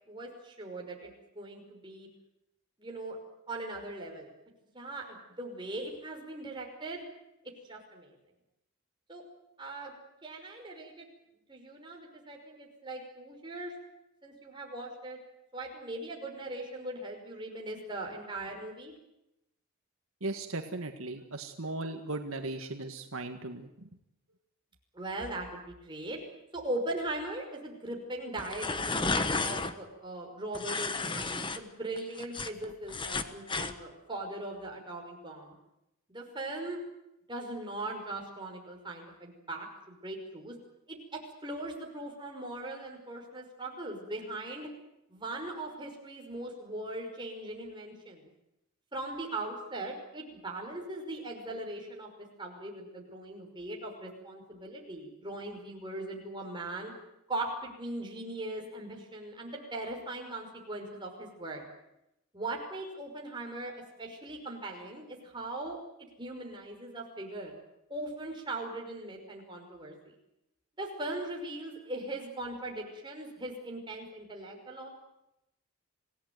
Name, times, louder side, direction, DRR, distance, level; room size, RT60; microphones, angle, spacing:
voice 1, 0.1-2.1 2.8-3.2 3.5-4.3 4.7-7.0 7.7-8.1 9.1-9.2 9.6-9.9 10.2-11.1 11.5-13.7 14.2-15.2 15.5-18.9 24.9-26.2 26.5-35.5 36.1-36.8 37.3-40.5 40.9-41.0 41.4-44.7 45.1-48.3 48.9-52.1 52.4-56.9 57.3-61.6 62.3-65.0 65.3-65.8 66.2-67.5 67.9-69.9 70.8-74.9, right 2 dB, 20° right, 1 dB, 5.6 m, -39 dB
voice 2, 20.2-23.9, right 2 dB, 70° right, 5 dB, 1.8 m, -37 dB
sound 1, 28.4-29.7 30.5-31.6 32.0-33.7, left 3 dB, 20° left, 1.2 m, -32 dB
27.5 x 17.5 x 9.6 m, 0.88 s
head